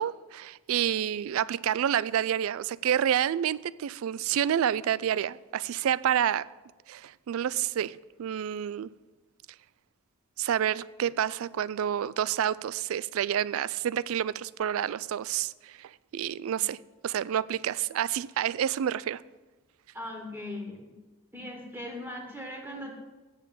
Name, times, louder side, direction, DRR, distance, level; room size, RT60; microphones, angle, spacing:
voice 1, 0.0-6.5 6.9-8.9 10.4-16.8 17.0-19.2, right 10 dB, 65° right, 0.3 m, -29 dB
voice 2, 19.9-21.0 21.3-22.9, left 1 dB, 10° right, 1.2 m, -39 dB
8.3 x 7.4 x 7.4 m
head